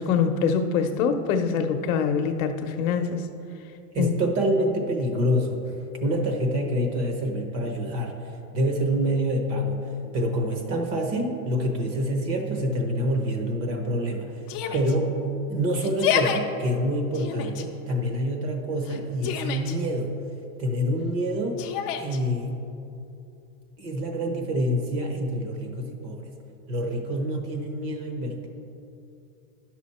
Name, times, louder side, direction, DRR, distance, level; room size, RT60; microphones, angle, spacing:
voice 1, 0.0-3.2 4.0-4.1, left 6 dB, 65° left, 6 dB, 0.8 m, -24 dB
voice 2, 3.9-5.6 6.0-14.3 14.7-15.2 15.5-20.1 20.6-21.6 22.0-22.6 23.8-26.3 26.7-28.5, equal, 35° right, 3 dB, 1.0 m, -26 dB
Yell, 14.5-14.9 15.8-16.4 17.1-17.6 18.8-19.8 21.6-22.2, left 9 dB, 35° left, 0.6 m, -28 dB
10.5 x 6.2 x 4.2 m, 2.7 s
supercardioid pair, 150°, 45 cm